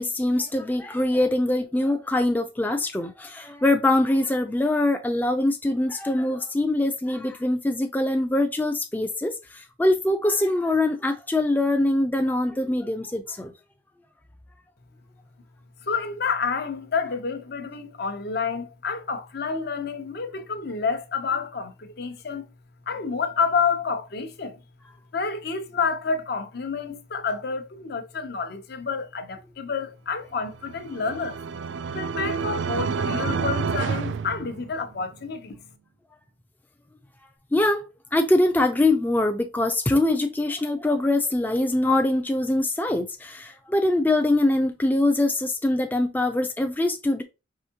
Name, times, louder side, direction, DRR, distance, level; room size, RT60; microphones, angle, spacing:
voice 1, 0.0-13.5 37.5-37.9 38.1-47.2, left 1 dB, 10° left, 0.4 m, -23 dB
voice 2, 15.8-22.4 22.9-24.6 25.1-31.4 31.9-35.6, left 5 dB, 60° left, 0.8 m, -29 dB
sound 1, 30.5-35.1, right 5 dB, 65° right, 0.3 m, -29 dB
4.9 x 3.4 x 2.8 m
head